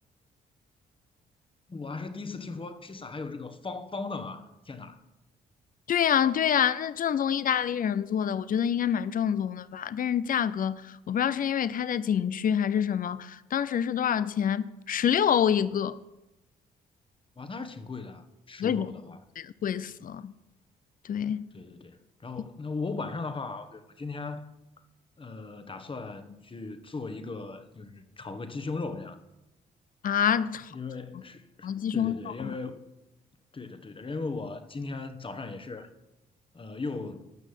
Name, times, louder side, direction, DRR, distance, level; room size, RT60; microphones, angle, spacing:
voice 1, 1.7-5.0 17.4-19.2 21.5-24.5 25.2-29.2 30.7-32.8 33.5-35.9 36.5-37.4, left 3 dB, 30° left, 1.3 m, -38 dB
voice 2, 5.9-10.7 11.1-16.0 18.6-18.9 19.4-20.3 21.1-21.5 30.0-30.7 31.6-32.5, left 9 dB, 50° left, 0.6 m, -27 dB
12.5 x 6.2 x 8.2 m
supercardioid pair, 70°, 18 cm